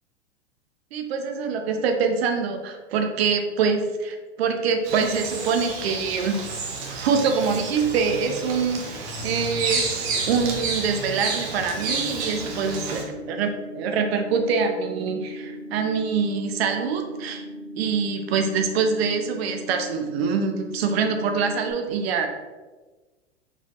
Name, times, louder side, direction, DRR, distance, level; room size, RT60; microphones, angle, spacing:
voice 1, 0.9-6.5 6.9-17.4 17.8-22.3, right 5 dB, 60° right, 5 dB, 0.7 m, -25 dB
Bird vocalization bird call bird song, 4.8-13.0, right 4 dB, 45° right, 1.0 m, -30 dB
sound 1, 11.7-21.7, left 1 dB, 30° left, 1.2 m, -39 dB
4.4 x 3.4 x 3.0 m, 1.3 s
hypercardioid pair, 95°, 35 cm